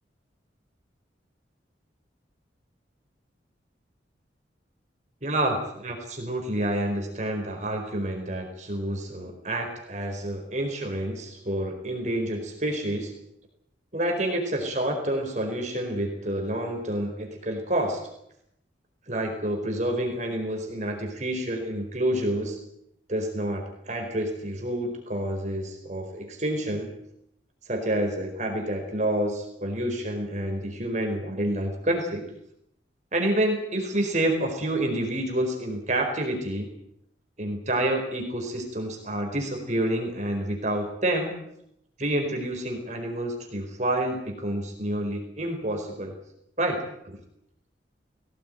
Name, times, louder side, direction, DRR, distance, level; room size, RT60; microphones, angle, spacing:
voice 1, 5.2-13.1 13.9-18.0 19.1-22.6 23.1-26.9 27.7-32.3 33.1-36.7 37.4-41.3 42.0-46.1 46.6-47.2, right 1 dB, 40° right, 2 dB, 4.6 m, -28 dB
21.5 x 17.5 x 9.3 m, 0.75 s
head